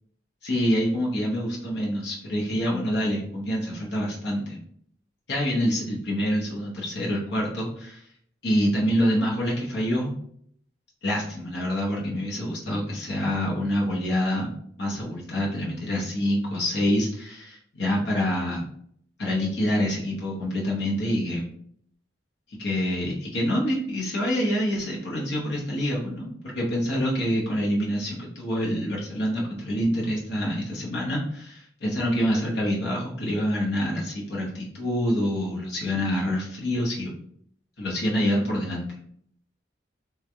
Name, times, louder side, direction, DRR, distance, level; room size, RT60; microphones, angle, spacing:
voice 1, 0.4-4.6 5.3-8.0 8.4-10.1 11.0-14.5 14.8-18.6 19.2-21.4 22.5-37.1 37.8-38.9, equal, 65° left, -4 dB, 0.9 m, -26 dB
3.4 x 3.4 x 3.2 m, 0.65 s
head